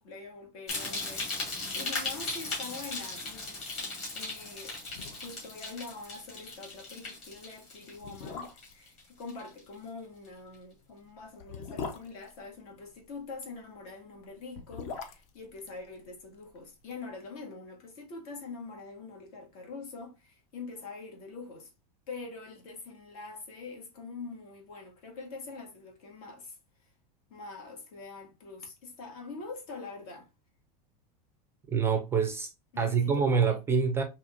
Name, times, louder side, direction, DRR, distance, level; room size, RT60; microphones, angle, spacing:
voice 1, 0.0-21.7 22.1-26.9 27.3-30.3 32.7-33.6, left 4 dB, 65° left, 1.8 m, -44 dB
sound 1, 0.7-9.0 9.3-9.7 10.2-10.3, left 3 dB, 30° left, 2.2 m, -37 dB
sound 2, 4.9-5.5 5.8-5.9 6.3-6.5 7.2-7.3 7.9-8.9 10.4-13.1 14.3-16.6 16.8-16.9, left 5 dB, 50° left, 0.8 m, -42 dB
voice 2, 31.7-32.5 32.8-34.0, right 6 dB, 10° right, 0.4 m, -26 dB
4.9 x 2.9 x 2.5 m
supercardioid pair, 170°, 20 cm